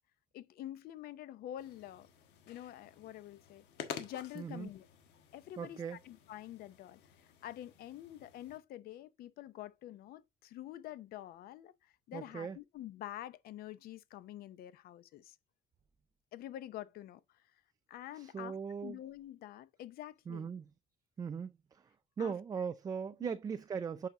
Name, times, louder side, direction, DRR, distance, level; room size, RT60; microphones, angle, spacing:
voice 1, 0.3-2.1 2.5-3.6 4.0-4.9 5.3-15.4 16.3-17.2 17.9-20.5 22.2-22.3 23.2-23.3, left 13 dB, 60° left, 0.7 m, -47 dB
sound 1, 1.6-8.6, left 8 dB, 80° left, 1.5 m, -51 dB
voice 2, 4.4-4.7 5.6-6.0 12.1-12.6 18.1-19.0 20.3-20.7 21.2-21.8 22.2-24.1, right 6 dB, 20° right, 0.4 m, -39 dB
7.8 x 5.6 x 2.8 m
cardioid pair, 145°, 17 cm